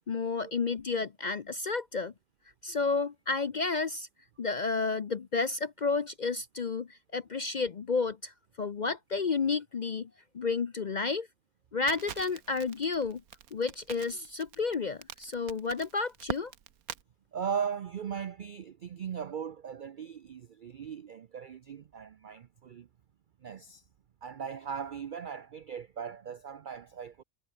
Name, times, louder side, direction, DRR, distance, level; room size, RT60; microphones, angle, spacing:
voice 1, 0.1-2.1 2.6-4.1 4.4-8.3 8.6-10.1 10.3-11.3 11.7-13.2 13.5-16.5, left 4 dB, 45° left, 0.6 m, -31 dB
Crackle, 11.9-17.0, right 9 dB, 80° right, 1.6 m, -43 dB
voice 2, 17.3-22.9 23.4-23.8 24.2-27.2, right 7 dB, 65° right, 0.5 m, -38 dB
omnidirectional pair, 1.5 m